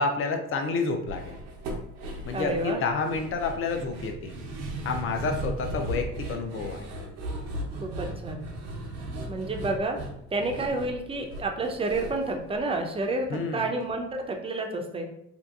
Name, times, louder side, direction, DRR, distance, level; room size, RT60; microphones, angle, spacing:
voice 1, 0.0-1.4 2.2-4.3 4.8-6.9 13.3-13.7, left 4 dB, 45° left, 5 dB, 0.5 m, -29 dB
sound 1, 1.1-13.4 13.6-13.7 14.1-14.2, right 1 dB, 90° right, 0.7 m, -37 dB
voice 2, 2.3-2.8 7.8-8.5 9.3-10.0 10.3-15.1, right 2 dB, 20° right, 3 dB, 0.4 m, -30 dB
2.7 x 2.4 x 2.3 m, 0.78 s
supercardioid pair, 80°, 30 cm